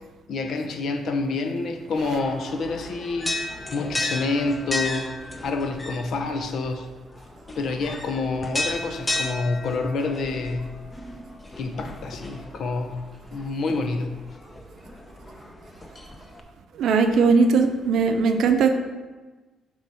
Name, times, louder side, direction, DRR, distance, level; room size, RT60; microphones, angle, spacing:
voice 1, 0.3-3.4 3.7-5.1 5.4-6.9 7.6-10.7 11.6-13.0 13.3-14.1, left 3 dB, 65° left, 6 dB, 0.7 m, -27 dB
sound 1, 2.0-16.4, left 2 dB, 20° left, 0.8 m, -34 dB
voice 2, 16.7-18.7, right 4 dB, 75° right, 6 dB, 0.6 m, -19 dB
7.3 x 3.2 x 5.5 m, 1.2 s
cardioid pair, 90°, 0 cm